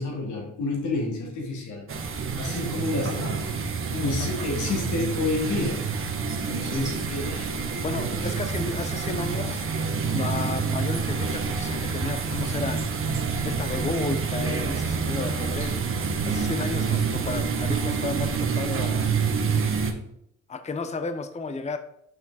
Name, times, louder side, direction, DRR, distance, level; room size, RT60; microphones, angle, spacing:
voice 1, 0.0-1.8 2.4-3.5 3.9-5.9 6.4-7.8, left 3 dB, 80° left, -1 dB, 2.8 m, -29 dB
sound 1, 1.9-19.9, right 5 dB, 45° right, 1.2 m, -27 dB
voice 2, 7.8-9.6 10.1-12.8 13.4-15.8 16.3-19.1 20.5-21.8, left 3 dB, 25° left, 9 dB, 0.7 m, -33 dB
6.5 x 6.1 x 4.1 m, 0.73 s
cardioid pair, 90°, 30 cm